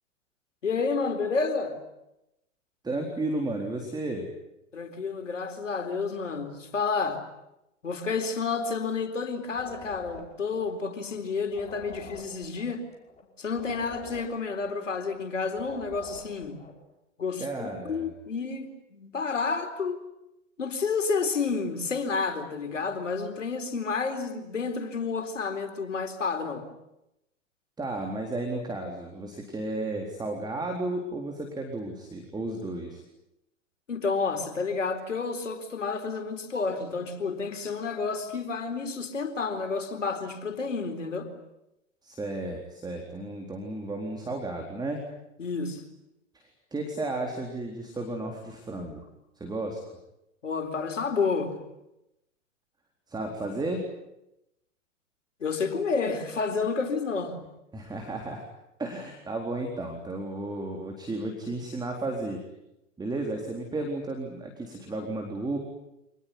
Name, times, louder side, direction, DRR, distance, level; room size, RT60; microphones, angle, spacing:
voice 1, 0.6-1.8 4.7-7.2 7.8-12.8 13.4-16.6 17.2-20.0 20.6-26.7 33.9-41.3 45.4-45.8 50.4-51.5 55.4-57.4, left 4 dB, 80° left, 4.1 m, -30 dB
voice 2, 2.8-4.3 17.4-18.1 27.8-33.0 42.0-45.0 46.3-49.1 49.4-49.8 53.1-53.8 57.7-58.4 58.8-62.4 63.0-65.6, right 2 dB, 10° right, 4.0 m, -33 dB
sound 1, 9.5-16.8, left 4 dB, 15° left, 5.5 m, -47 dB
26.5 x 20.5 x 9.7 m
figure-of-eight pair, 100°, 37 cm